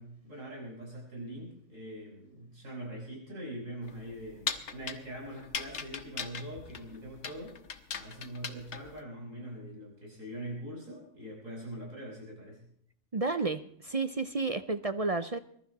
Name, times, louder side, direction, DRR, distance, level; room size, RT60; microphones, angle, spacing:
voice 1, 0.0-7.6 8.0-12.6, right 1 dB, 90° right, -2 dB, 6.2 m, -43 dB
sound 1, 3.8-9.0, left 6 dB, 65° left, 1.5 m, -39 dB
voice 2, 13.1-15.4, right 3 dB, 40° right, 11 dB, 0.6 m, -31 dB
21.5 x 12.0 x 4.1 m, 0.67 s
omnidirectional pair, 1.3 m